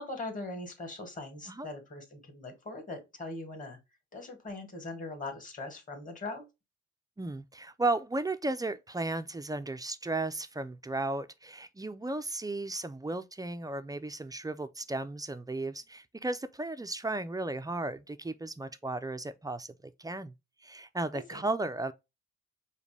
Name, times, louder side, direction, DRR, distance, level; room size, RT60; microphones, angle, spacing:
voice 1, 0.0-3.8 4.1-6.4 21.1-21.4, left 2 dB, 25° left, 2.2 m, -41 dB
voice 2, 7.2-20.3 20.6-21.9, right 2 dB, 15° right, 0.4 m, -35 dB
5.0 x 2.2 x 3.3 m
supercardioid pair, 70°, 29 cm